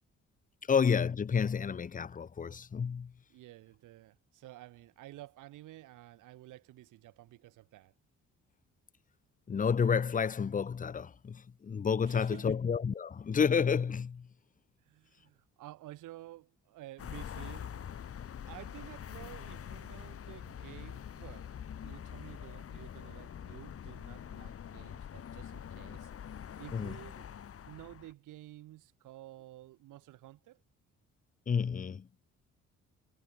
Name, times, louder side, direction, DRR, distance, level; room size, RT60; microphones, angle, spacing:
voice 1, 0.7-3.1 9.5-14.3 26.7-27.0 31.5-32.1, left 6 dB, 25° left, 0.7 m, -30 dB
voice 2, 3.3-7.9 12.0-12.6 14.8-17.9 18.5-21.5 21.8-26.1 26.6-27.3 27.6-30.6, right 16 dB, 90° right, 4.6 m, -51 dB
sound 1, 17.0-28.1, left 9 dB, 50° left, 1.5 m, -45 dB
cardioid pair, 90°, 30 cm